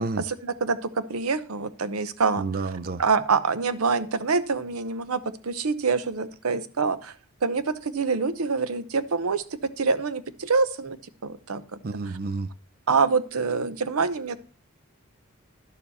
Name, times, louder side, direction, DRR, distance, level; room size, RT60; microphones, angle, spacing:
voice 1, 0.2-2.4 3.0-7.1 7.4-11.0 11.2-11.8 12.9-14.4, right 4 dB, 80° right, 0.8 m, -26 dB
voice 2, 2.4-3.0 11.8-12.5, right 3 dB, 45° right, 0.5 m, -30 dB
11.0 x 7.0 x 4.1 m
head